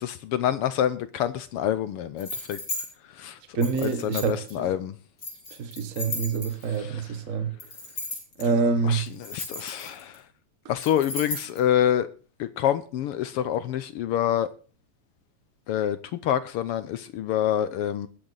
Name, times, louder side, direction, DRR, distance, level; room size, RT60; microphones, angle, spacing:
voice 1, 0.0-2.6 3.1-3.4 3.8-4.9 6.7-7.0 8.4-8.5 8.8-10.2 10.7-12.1 12.4-14.5 15.7-18.1, left 10 dB, 75° left, 1.3 m, -27 dB
sound 1, 2.2-2.8 3.6-4.5 5.2-6.8 7.6-8.4 9.1-10.1 10.8-11.6, left 2 dB, 30° left, 5.3 m, -35 dB
voice 2, 3.5-4.7 5.6-7.6 8.4-9.1, right 5 dB, 60° right, 0.8 m, -26 dB
20.5 x 8.2 x 3.9 m
omnidirectional pair, 3.3 m